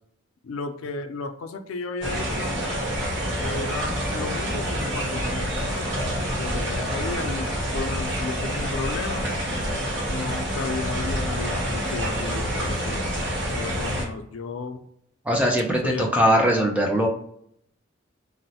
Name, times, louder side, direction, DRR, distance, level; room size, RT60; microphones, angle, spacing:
voice 1, 0.4-2.6 3.4-5.9 6.4-7.5 7.7-9.3 10.1-13.1 13.5-14.8 15.8-16.1, left 3 dB, 85° left, 7 dB, 0.4 m, -33 dB
sound 1, 2.0-14.0, equal, 60° right, 1.0 m, -27 dB
voice 2, 15.3-17.1, equal, 5° right, 0 dB, 0.4 m, -21 dB
3.0 x 2.0 x 2.7 m, 0.70 s
head